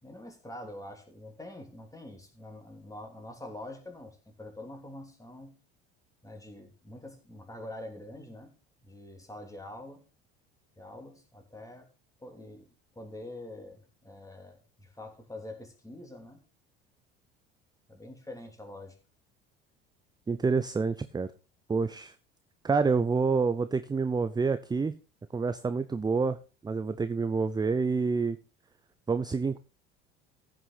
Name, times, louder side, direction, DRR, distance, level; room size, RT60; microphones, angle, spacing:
voice 1, 0.0-5.5 6.2-8.5 8.8-10.0 10.8-11.9 12.2-12.7 12.9-16.4 17.9-19.0, left 1 dB, 10° left, 3.4 m, -45 dB
voice 2, 20.3-21.3 21.7-22.1 22.6-24.9 25.3-26.4 26.6-28.4 29.1-29.6, right 4 dB, 15° right, 0.6 m, -27 dB
15.0 x 6.2 x 4.1 m
hypercardioid pair, 65°, 30 cm